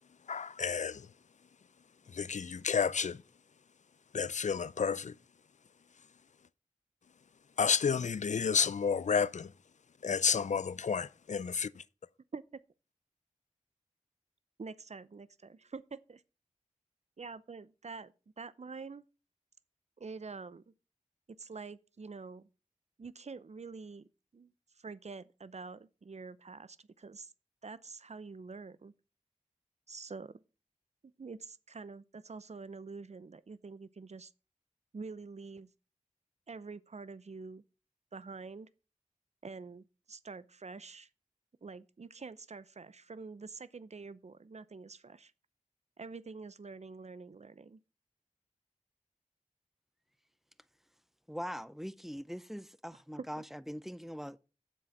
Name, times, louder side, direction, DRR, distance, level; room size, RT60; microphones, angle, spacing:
voice 1, 0.3-1.1 2.1-3.2 4.1-5.1 7.6-9.5 10.0-11.8, left 6 dB, 65° left, 0.4 m, -31 dB
voice 2, 14.6-16.2 17.2-19.0 20.0-20.6 21.4-22.5 23.0-27.3 27.6-28.9 29.9-30.4 31.2-34.3 34.9-35.7 36.5-37.6 38.1-38.7 39.4-41.1 41.6-45.3 46.0-47.8, right 4 dB, 55° right, 0.6 m, -46 dB
voice 3, 51.3-54.4, equal, ahead, 0.5 m, -42 dB
7.7 x 6.2 x 5.8 m
wide cardioid pair, 50°, 13 cm